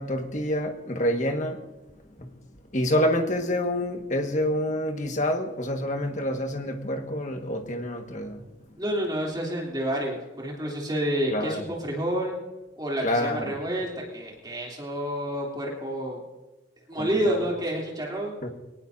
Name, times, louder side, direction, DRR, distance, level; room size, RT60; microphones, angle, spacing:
voice 1, 0.0-1.6 2.2-2.3 2.7-8.4 11.3-11.6 13.0-13.4 17.0-17.5 18.4-18.5, left 1 dB, 40° left, 4 dB, 1.7 m, -27 dB
voice 2, 8.8-12.4 12.8-16.2 16.9-18.4, equal, 20° right, -3 dB, 3.2 m, -29 dB
22.5 x 18.5 x 2.8 m, 1.1 s
head